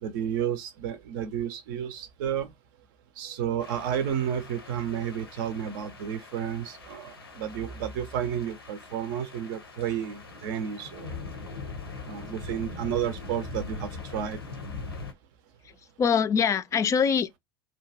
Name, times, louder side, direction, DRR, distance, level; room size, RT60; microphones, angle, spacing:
voice 1, 0.0-2.5 3.2-11.1 12.0-14.4, right 9 dB, 60° right, 0.5 m, -31 dB
sound 1, 3.6-15.1, left 4 dB, 85° left, 0.7 m, -42 dB
voice 2, 15.6-17.4, left 7 dB, 25° left, 0.3 m, -24 dB
2.8 x 2.2 x 2.7 m
figure-of-eight pair, 75°, 12 cm